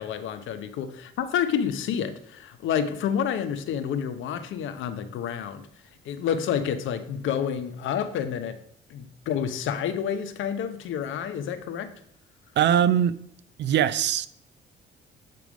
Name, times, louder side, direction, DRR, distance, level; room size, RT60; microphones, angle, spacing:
voice 1, 0.0-5.7 6.0-8.6 8.9-11.9, left 8 dB, 80° left, 0.8 m, -29 dB
voice 2, 12.6-13.2 13.6-14.3, right 9 dB, 60° right, 0.5 m, -21 dB
7.7 x 3.5 x 6.1 m
cardioid pair, 90°, 20 cm